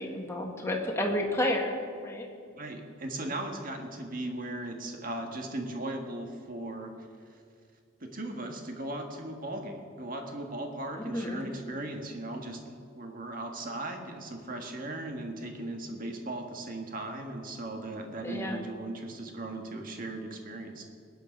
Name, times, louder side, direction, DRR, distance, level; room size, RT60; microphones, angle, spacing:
voice 1, 0.0-1.7 2.0-2.3 10.9-11.4 18.2-18.6, left 1 dB, 15° left, 0 dB, 1.8 m, -31 dB
voice 2, 2.6-7.1 8.0-20.9, right 1 dB, 45° right, 3 dB, 1.8 m, -38 dB
20.5 x 9.3 x 5.3 m, 2.2 s
head